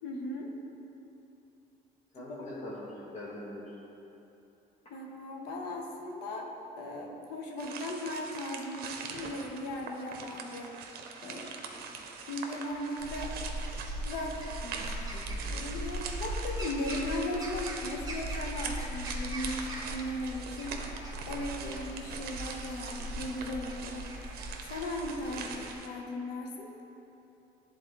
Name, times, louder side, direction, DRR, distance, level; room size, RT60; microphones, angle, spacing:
voice 1, 0.0-0.5 2.2-2.4 4.9-6.5 6.8-10.8 11.2-11.6 12.3-13.3 14.0-20.8 21.3-24.1 24.6-26.7, left 1 dB, 80° left, 1 dB, 0.9 m, -37 dB
voice 2, 2.1-3.8 11.7-11.9 21.6-21.7 25.3-25.5, left 1 dB, 40° left, -8 dB, 1.1 m, -43 dB
sound 1, 7.6-25.9, right 5 dB, 65° right, 0.7 m, -43 dB
sound 2, 13.0-25.8, equal, 20° right, 1.0 m, -39 dB
10.5 x 3.9 x 3.1 m, 3.0 s
cardioid pair, 110°, 17 cm